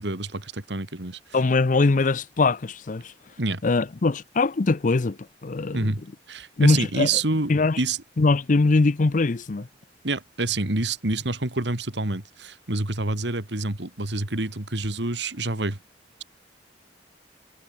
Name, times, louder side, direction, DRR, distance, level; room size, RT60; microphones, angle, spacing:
voice 1, 0.0-1.2 3.4-3.6 5.7-6.0 6.3-8.0 10.0-15.8, right 2 dB, 70° right, 2.6 m, -27 dB
voice 2, 1.3-3.1 3.6-5.9 6.6-7.1 7.5-7.8 8.2-9.7, left 3 dB, 45° left, 0.6 m, -22 dB
head